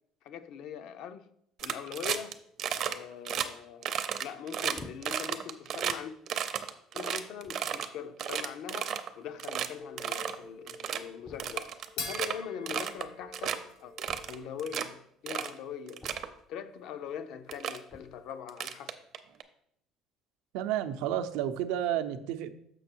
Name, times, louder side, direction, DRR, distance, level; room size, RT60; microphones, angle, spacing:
voice 1, 0.2-1.3 1.6-2.4 2.9-3.9 4.2-6.1 6.9-13.9 14.3-16.1 16.5-19.0, left 8 dB, 60° left, 0.6 m, -42 dB
sound 1, 1.6-2.3 2.6-3.0 3.3-3.5 3.8-6.0 6.3-7.9 8.2-9.1 9.4-9.7 10.0-10.4 10.7-11.0 11.4-12.3 12.7-13.1 13.3-13.6 14.0-14.9 15.3-15.5 15.9-16.3 17.1-17.2 17.5-17.8 18.5-19.4, right 9 dB, 45° right, 0.6 m, -33 dB
sound 2, 4.7-5.4 6.1-6.3 7.1-7.2 7.4-7.7 9.0-9.1 9.3-9.4 9.6-9.7 11.2-11.8 14.0-14.7 16.0-16.6 17.8-18.3, left 3 dB, 15° left, 0.4 m, -50 dB
sound 3, 9.8-14.6, left 3 dB, 80° left, 3.1 m, -45 dB
voice 2, 20.5-22.5, right 11 dB, 90° right, 0.6 m, -31 dB
6.5 x 5.9 x 4.5 m
cardioid pair, 155°, 0 cm